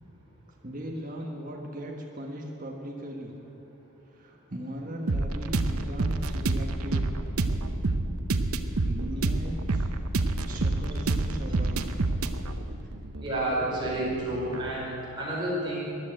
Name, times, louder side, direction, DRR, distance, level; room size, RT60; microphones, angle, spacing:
voice 1, 0.6-3.4 4.0-7.1 8.8-9.9 10.4-11.9 12.8-12.9, equal, 35° right, -1 dB, 1.4 m, -38 dB
sound 1, 5.1-14.7, right 2 dB, 75° right, 0.8 m, -28 dB
voice 2, 13.2-15.8, right 1 dB, 20° right, -6 dB, 4.8 m, -30 dB
14.5 x 10.0 x 9.0 m, 2.8 s
head